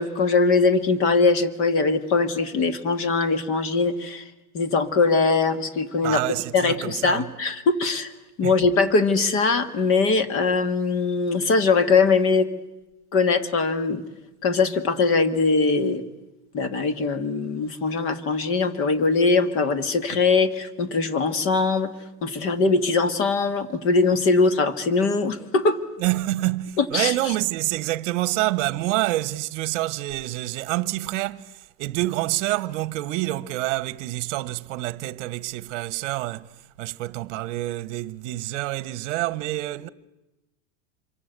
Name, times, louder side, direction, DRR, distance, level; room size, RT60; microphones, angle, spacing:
voice 1, 0.0-4.2 4.5-6.2 6.5-8.1 8.4-12.5 13.1-14.0 14.4-16.0 16.5-21.9 22.2-25.8 26.8-27.1, left 4 dB, 30° left, 1.8 m, -21 dB
voice 2, 6.0-7.3 8.4-8.5 26.0-36.5 36.8-39.9, right 17 dB, 55° right, 1.2 m, -27 dB
27.0 x 23.5 x 8.2 m
supercardioid pair, 165°, 45 cm